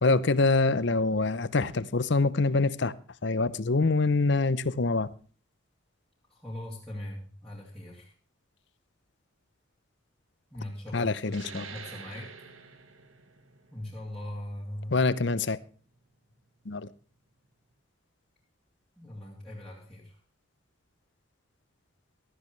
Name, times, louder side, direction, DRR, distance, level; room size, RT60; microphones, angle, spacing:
voice 1, 0.0-2.9 3.2-5.1 10.9-11.6 14.9-15.6 16.7-16.9, left 3 dB, 55° left, 0.7 m, -25 dB
voice 2, 6.3-8.1 10.5-12.3 13.7-14.9 19.0-20.2, left 1 dB, 5° left, 2.9 m, -40 dB
sound 1, 11.2-16.4, right 5 dB, 80° right, 1.5 m, -48 dB
16.0 x 13.0 x 3.2 m
head